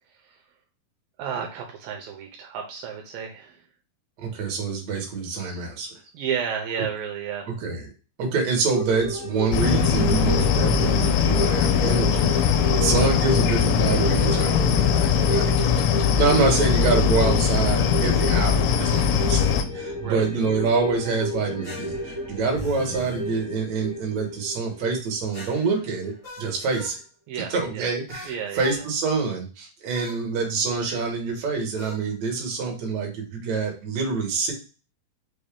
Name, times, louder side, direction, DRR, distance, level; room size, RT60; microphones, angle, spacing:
voice 1, 1.2-3.6 6.1-7.8 20.0-20.3 27.3-27.9 28.2-28.8, right 7 dB, 80° right, 1 dB, 2.4 m, -32 dB
voice 2, 4.2-5.9 7.5-7.9 8.2-27.0 27.5-34.5, right 4 dB, 60° right, 1 dB, 2.2 m, -26 dB
sound 1, 8.7-25.5 25.8-25.9, equal, ahead, 0.8 m, -31 dB
sound 2, 9.5-19.6, left 7 dB, 85° left, 2.4 m, -21 dB
sound 3, 18.9-19.5 21.6-23.2 25.3-27.0 28.1-28.8 29.9-30.2 31.8-32.0, equal, 40° left, 0.8 m, -39 dB
5.8 x 2.6 x 3.4 m, 0.34 s
omnidirectional pair, 4.2 m